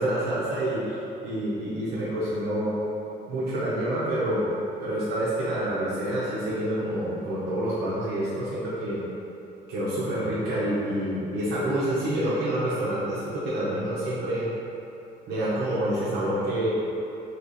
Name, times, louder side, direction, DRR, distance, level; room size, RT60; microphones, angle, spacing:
voice 1, 0.0-2.8 3.3-4.4 4.8-9.0 9.7-14.5 15.3-16.7, right 1 dB, 80° right, -9 dB, 0.9 m, -27 dB
3.3 x 2.9 x 4.0 m, 2.9 s
cardioid pair, 110°, 17 cm